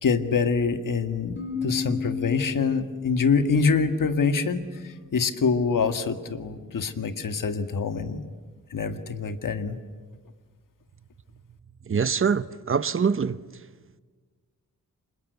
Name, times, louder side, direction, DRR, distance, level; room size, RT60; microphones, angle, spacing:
voice 1, 0.0-8.2 8.7-9.8, left 5 dB, 70° left, 1.8 m, -25 dB
sound 1, 1.4-5.0, left 6 dB, 35° left, 4.8 m, -34 dB
voice 2, 11.9-13.4, right 6 dB, 40° right, 0.8 m, -24 dB
28.0 x 26.0 x 8.1 m
wide cardioid pair, 150°, 33 cm